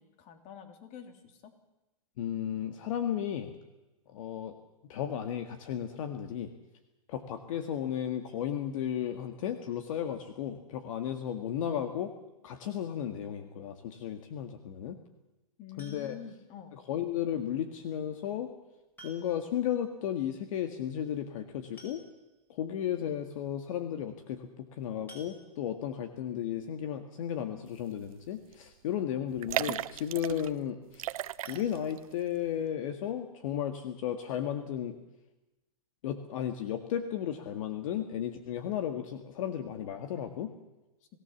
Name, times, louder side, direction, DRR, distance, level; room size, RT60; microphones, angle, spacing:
voice 1, 0.0-1.5 15.6-16.7, left 8 dB, 35° left, 7 dB, 3.3 m, -47 dB
voice 2, 2.2-3.5 4.1-4.6 4.9-6.5 7.1-12.1 12.4-15.0 15.8-16.2 16.7-18.5 19.0-22.0 22.5-31.1 31.5-35.0 36.0-40.5, left 10 dB, 60° left, 8 dB, 1.9 m, -34 dB
sound 1, 15.8-16.4 17.9-18.0 19.0-19.6 19.9-20.0 20.3-20.4 21.4-21.5 21.8-22.5 23.0-23.1 23.5-23.7 25.1-25.9 31.4-32.6 33.0-33.1 33.5-33.6 34.0-34.1, right 1 dB, 10° left, 6.0 m, -55 dB
sound 2, 28.0-28.3 28.5-28.6 29.3-30.5 30.9-32.0 32.3-32.4, right 12 dB, 70° right, 0.9 m, -35 dB
26.0 x 17.5 x 7.3 m, 1.0 s
hypercardioid pair, 135°, 19 cm